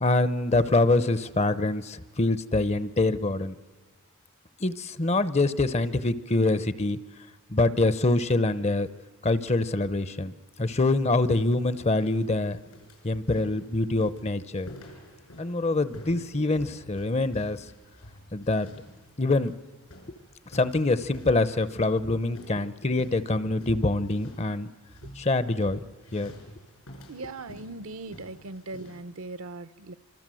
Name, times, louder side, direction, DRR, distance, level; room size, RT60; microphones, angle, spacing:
voice 1, 0.0-3.5 4.6-7.0 7.5-8.9 9.2-10.3 10.6-12.6 13.0-14.7 15.4-17.6 18.3-18.7 19.2-19.5 20.5-24.7 25.2-25.8 26.1-26.3, left 2 dB, 30° left, 15 dB, 0.7 m, -25 dB
sound 1, 10.9-29.0, equal, 80° left, 6.3 m, -49 dB
voice 2, 27.1-29.9, right 2 dB, 65° right, 13 dB, 0.8 m, -39 dB
26.0 x 25.5 x 7.7 m, 1.4 s
head